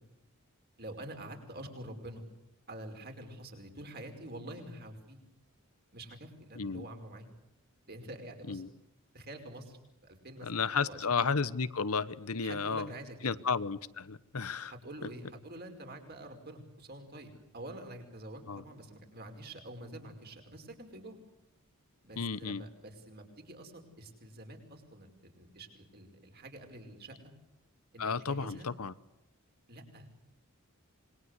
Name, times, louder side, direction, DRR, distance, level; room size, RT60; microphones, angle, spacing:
voice 1, 0.8-2.3 2.7-5.2 5.9-7.3 7.9-8.6 9.1-11.3 12.4-13.4 14.7-21.2 22.0-27.2 27.9-28.7 29.7-30.1, right 1 dB, 45° right, 4 dB, 5.1 m, -47 dB
voice 2, 6.6-6.9 8.5-8.7 10.4-12.9 13.2-14.7 18.5-18.6 22.2-22.6 28.0-28.9, left 5 dB, 85° left, 16 dB, 1.0 m, -33 dB
26.5 x 22.5 x 8.3 m, 0.85 s
head